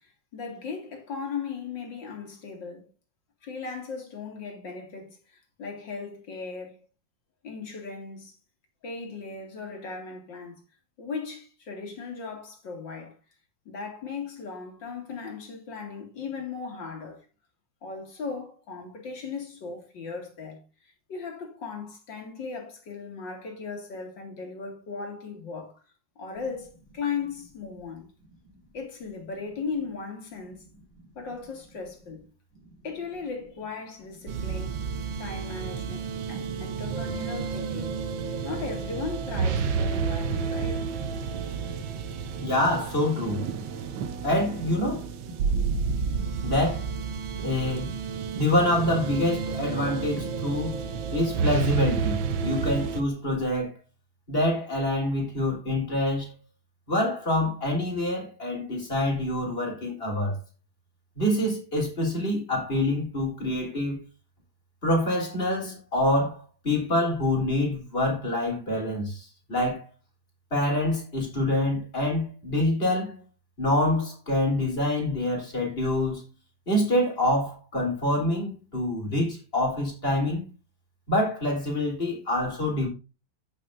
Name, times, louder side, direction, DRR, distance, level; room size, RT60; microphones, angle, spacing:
voice 1, 0.0-2.9 3.4-5.2 5.6-6.9 7.4-8.3 8.8-10.6 11.0-13.1 13.7-17.2 17.8-25.7 26.2-28.1 28.7-30.7 31.2-32.2 32.8-34.9 35.2-38.0 38.4-40.9, left 5 dB, 70° left, 2.9 m, -37 dB
sound 1, 34.3-53.0, right 5 dB, 80° right, 1.6 m, -30 dB
voice 2, 42.4-43.4 44.2-45.1 46.4-46.9 47.4-47.9 48.4-50.8 51.1-53.7 54.3-56.3 56.9-60.4 61.2-64.0 64.8-69.8 70.5-73.2 73.6-76.3 76.7-80.4 81.1-82.9, left 1 dB, 30° left, 3.7 m, -26 dB
15.0 x 6.5 x 2.6 m
omnidirectional pair, 2.1 m